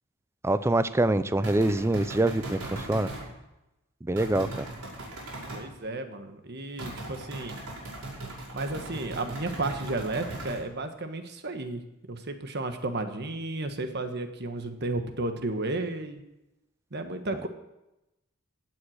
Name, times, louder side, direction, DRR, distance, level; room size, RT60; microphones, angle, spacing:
voice 1, 0.4-3.1 4.1-4.7, right 2 dB, 10° right, 14 dB, 0.4 m, -25 dB
sound 1, 1.4-3.3 4.2-5.6 6.8-10.6, right 2 dB, 85° right, 5.7 m, -39 dB
voice 2, 5.5-7.5 8.5-11.8 12.1-16.2 16.9-17.5, right 2 dB, 50° right, 7 dB, 1.3 m, -33 dB
16.5 x 7.9 x 6.5 m, 0.95 s
head